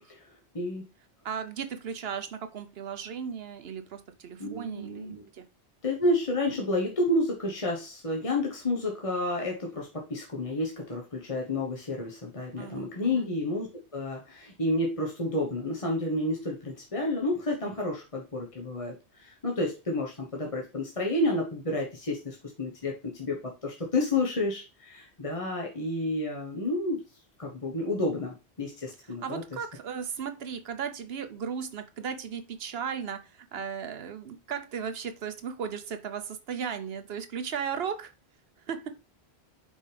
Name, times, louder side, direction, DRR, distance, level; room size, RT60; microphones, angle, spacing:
voice 1, 1.2-5.5 12.6-13.3 29.2-38.1 38.7-38.9, right 7 dB, 65° right, 9 dB, 1.0 m, -36 dB
voice 2, 4.4-5.2 5.8-13.7 13.9-27.0 27.4-29.4, left 1 dB, 30° left, -1 dB, 1.3 m, -30 dB
5.4 x 5.2 x 3.4 m, 0.29 s
omnidirectional pair, 1.1 m